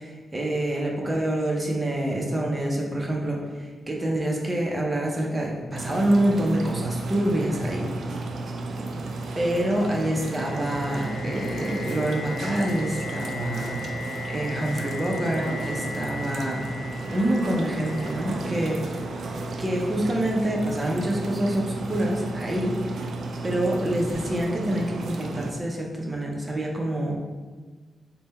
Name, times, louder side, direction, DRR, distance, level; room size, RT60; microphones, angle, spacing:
voice 1, 0.0-7.9 9.4-13.8 14.3-16.7 17.1-18.8 19.6-22.8 23.4-27.2, right 1 dB, 20° right, -1 dB, 0.6 m, -26 dB
sound 1, 5.7-25.5, right 2 dB, 60° right, 0.3 m, -33 dB
sound 2, 9.3-19.2, left 3 dB, 50° left, 1.4 m, -38 dB
3.6 x 2.1 x 4.1 m, 1.3 s
wide cardioid pair, 150°, 0 cm